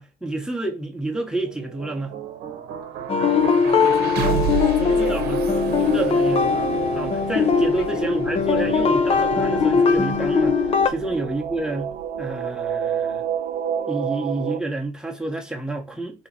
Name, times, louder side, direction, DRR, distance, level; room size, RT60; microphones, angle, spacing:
voice 1, 0.0-2.1 4.8-5.4 5.8-10.6 10.8-13.2 13.9-16.3, right 2 dB, 5° right, 0.9 m, -29 dB
sound 1, 1.2-13.2, right 6 dB, 75° right, 0.8 m, -33 dB
sound 2, 3.1-10.9, left 6 dB, 35° left, 0.5 m, -20 dB
voice 2, 3.3-5.4 6.9-7.1 7.8-8.0 11.0-11.2, left 4 dB, 80° left, 0.9 m, -37 dB
sound 3, 4.0-14.6, right 8 dB, 55° right, 0.4 m, -30 dB
2.9 x 2.8 x 3.9 m
cardioid pair, 110°, 17 cm